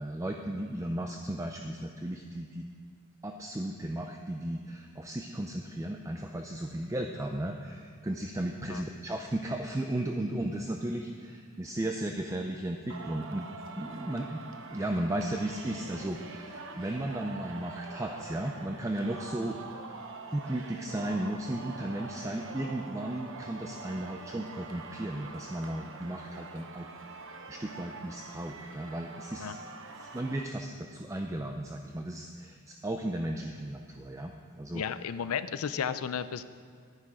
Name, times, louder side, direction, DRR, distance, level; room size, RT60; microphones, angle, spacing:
voice 1, 0.0-2.6 3.2-13.5 13.8-14.4 14.7-19.6 19.9-20.0 20.3-27.2 27.5-29.6 30.0-34.8, right 1 dB, 15° right, 3 dB, 0.4 m, -35 dB
Singing, 12.9-30.4, right 4 dB, 60° right, 0.8 m, -45 dB
voice 2, 34.7-36.4, left 7 dB, 90° left, 13 dB, 0.5 m, -33 dB
10.5 x 9.8 x 4.9 m, 2.1 s
head